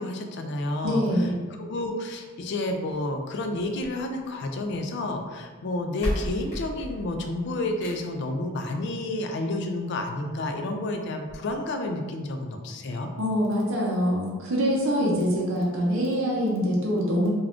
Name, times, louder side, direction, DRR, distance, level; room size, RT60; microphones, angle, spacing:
voice 1, 0.0-1.3 1.6-13.1 15.0-15.2, left 2 dB, 55° left, 4 dB, 0.3 m, -30 dB
voice 2, 0.8-1.4 13.2-17.3, equal, 65° right, -3 dB, 0.5 m, -24 dB
sound 1, 3.6-4.8 5.6-5.7 6.0-8.3 9.6-9.7 10.2-10.3 10.6-10.7 11.2-11.4, equal, 35° left, 0.7 m, -34 dB
2.4 x 2.3 x 3.4 m, 1.6 s
head